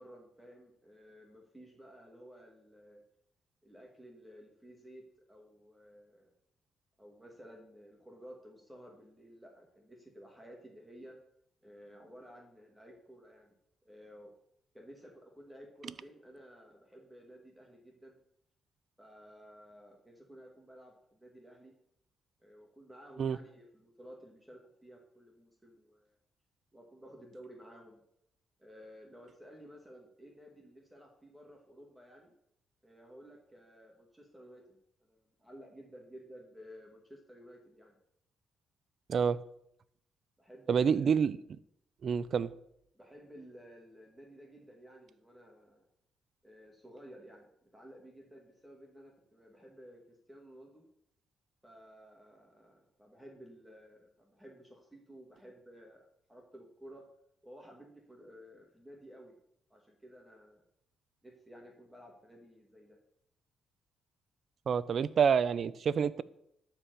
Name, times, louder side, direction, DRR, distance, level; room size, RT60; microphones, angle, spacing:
voice 1, 0.0-3.0 3.6-6.3 7.0-11.2 11.6-13.5 13.8-14.3 14.7-18.2 19.0-21.8 22.4-26.1 26.7-28.0 28.6-32.3 32.8-34.6 35.1-38.0 40.4-41.2 42.9-45.9 46.4-50.9 51.6-57.0 57.4-59.4 59.7-60.6 61.2-63.0, equal, 5° right, 0 dB, 2.3 m, -54 dB
voice 2, 39.1-39.4 40.7-41.4 42.0-42.5 64.7-66.2, right 7 dB, 55° right, 18 dB, 0.5 m, -28 dB
12.5 x 4.7 x 6.9 m, 0.73 s
cardioid pair, 90°, 0 cm